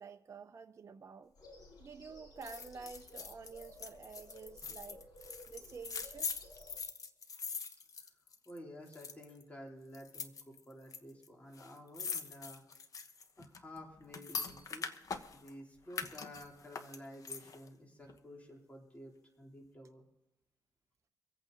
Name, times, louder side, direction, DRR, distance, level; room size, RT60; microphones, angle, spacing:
voice 1, 0.0-1.3 1.8-5.1 5.5-6.3, right 5 dB, 40° right, 0.7 m, -50 dB
sound 1, 1.4-6.8, left 1 dB, 70° left, 4.1 m, -56 dB
sound 2, 2.4-8.6 8.9-9.4 9.9-11.0 11.2-11.3 11.5-15.5 15.9-17.7 18.1-18.2, left 5 dB, 50° left, 1.2 m, -43 dB
voice 2, 8.5-12.7 13.4-14.9 15.3-20.0, equal, 20° left, 3.1 m, -52 dB
25.0 x 8.7 x 3.9 m
cardioid pair, 105°, 8 cm